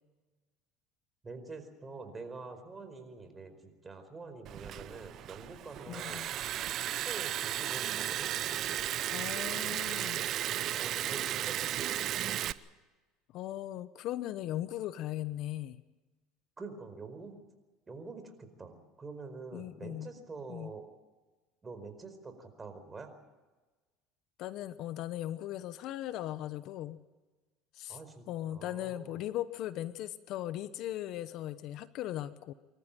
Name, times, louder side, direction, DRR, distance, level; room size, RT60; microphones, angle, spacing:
voice 1, 1.2-6.2 6.8-8.3 10.3-12.4 16.6-17.4 17.9-20.9 21.6-23.1 27.9-29.2, right 3 dB, 20° right, 7 dB, 4.8 m, -46 dB
Liquid, 4.5-12.5, right 12 dB, 50° right, 0.8 m, -34 dB
voice 2, 5.9-6.3 9.1-10.2 13.3-15.8 19.5-20.1 20.5-20.7 24.4-27.0 27.7-28.0 28.3-32.5, left 13 dB, 60° left, 14 dB, 1.0 m, -38 dB
26.0 x 14.0 x 9.1 m, 1.2 s
supercardioid pair, 100°, 0 cm